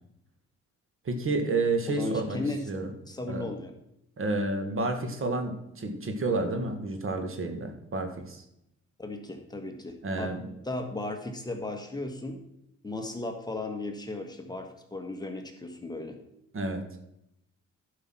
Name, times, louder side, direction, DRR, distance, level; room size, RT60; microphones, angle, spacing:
voice 1, 1.1-2.4 2.7-2.9 3.2-3.5 4.2-8.4 10.0-10.4 16.5-16.8, right 3 dB, 45° right, 6 dB, 1.7 m, -30 dB
voice 2, 1.9-2.7 3.1-3.7 9.0-10.3 10.6-12.4 12.8-16.2, left 2 dB, 15° left, 4 dB, 1.6 m, -35 dB
11.5 x 5.8 x 6.0 m, 0.80 s
cardioid pair, 90°, 30 cm